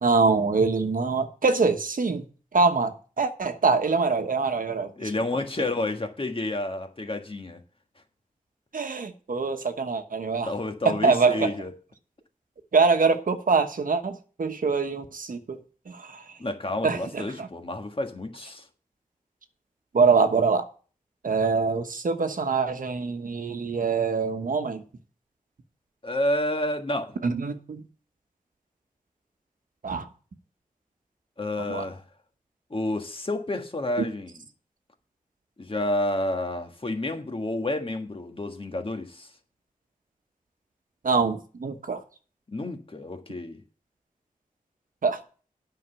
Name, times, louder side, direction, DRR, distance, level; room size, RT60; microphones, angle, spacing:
voice 1, 0.0-2.2 2.5-4.9 8.7-10.5 10.8-11.5 12.7-15.6 15.9-16.2 16.8-17.5 19.9-20.7 21.2-24.8 27.2-27.8 29.8-30.1 31.7-31.8 41.0-42.0 45.0-45.2, right 4 dB, 75° right, 1.1 m, -24 dB
voice 2, 5.0-7.6 10.4-11.7 16.4-18.7 26.0-27.2 31.4-32.0 32.7-34.4 35.6-39.3 42.5-43.6, left 1 dB, 40° left, 1.6 m, -30 dB
9.1 x 5.9 x 6.9 m
wide cardioid pair, 60°, 14 cm